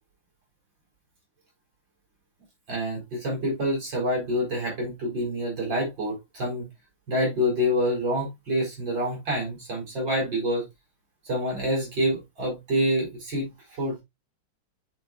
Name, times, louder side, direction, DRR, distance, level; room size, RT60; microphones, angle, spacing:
voice 1, 2.7-6.7 7.1-10.6 11.2-14.0, equal, 65° right, 4.9 m, -27 dB
10.5 x 4.7 x 2.4 m
omnidirectional pair, 2.2 m